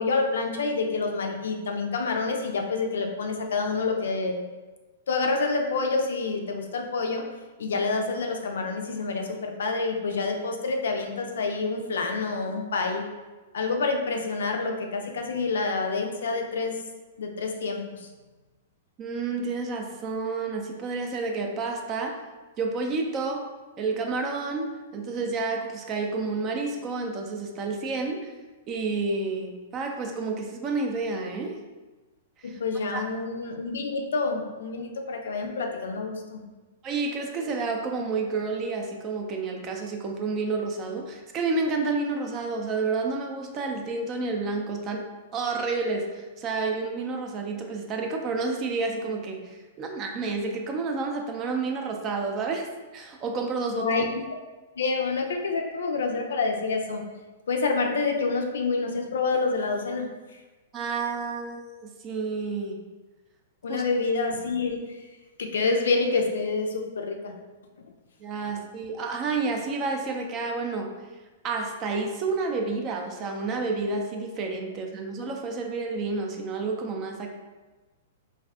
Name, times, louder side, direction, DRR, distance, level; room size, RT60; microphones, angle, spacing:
voice 1, 0.0-4.4 5.1-7.2 7.6-13.0 13.5-16.8 17.2-18.1 32.4-36.4 53.7-54.0 54.8-57.0 57.5-60.1 63.6-65.0 65.4-67.3, left 3 dB, 75° left, 3 dB, 0.4 m, -27 dB
voice 2, 19.0-22.2 22.6-23.5 23.8-24.7 24.9-28.3 28.7-31.6 32.4-32.6 32.9-33.0 36.8-45.0 45.3-52.7 52.9-53.9 60.7-62.8 63.7-63.8 68.2-70.9 71.4-77.3, right 3 dB, 30° right, 3 dB, 0.4 m, -30 dB
2.5 x 2.4 x 3.3 m, 1.2 s
hypercardioid pair, 115°, 0 cm